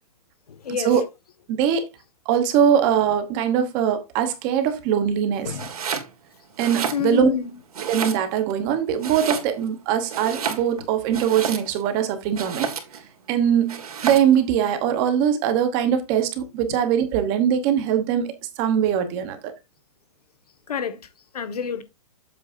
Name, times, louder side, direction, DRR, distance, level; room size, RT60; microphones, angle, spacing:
voice 1, 0.5-1.0 5.4-5.7 6.9-7.5 20.7-21.0 21.3-21.8, left 8 dB, 85° left, 1.5 m, -28 dB
voice 2, 1.5-1.8 2.3-5.5 6.6-7.3 7.8-12.7 13.3-19.5, right 9 dB, 20° right, 0.9 m, -22 dB
Domestic sounds home sounds, 5.5-6.1 6.5-7.4 7.7-8.5 9.0-9.8 10.1-11.9 12.3-13.1 13.7-14.4, right 7 dB, 75° right, 2.8 m, -30 dB
8.5 x 7.5 x 2.6 m
hypercardioid pair, 175°, 19 cm